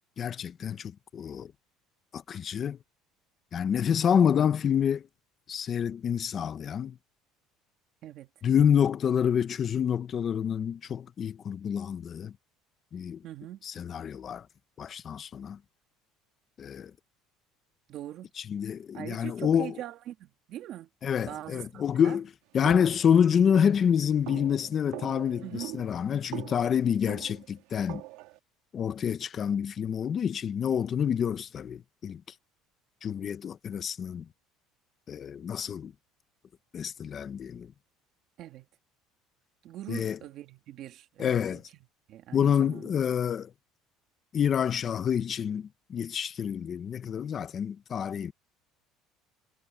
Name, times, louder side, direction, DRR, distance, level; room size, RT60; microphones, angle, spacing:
voice 1, 0.2-1.5 2.1-2.8 3.5-5.1 5.5-7.0 8.4-12.3 12.9-13.2 13.6-14.5 14.8-15.6 16.6-16.9 18.4-19.8 21.0-22.3 22.5-28.0 28.7-32.2 33.0-34.3 35.1-35.9 36.7-37.7 39.9-40.2 41.2-41.6 42.3-43.5 44.3-48.3, left 8 dB, 30° left, 0.8 m, -27 dB
voice 2, 13.2-13.6 17.9-18.3 18.9-20.9 21.3-22.2 25.4-25.7 38.4-38.7 39.6-41.6 42.1-42.9, right 12 dB, 50° right, 2.3 m, -42 dB
sound 1, 22.6-28.4, right 20 dB, 80° right, 2.4 m, -43 dB
cardioid pair, 155°, 0 cm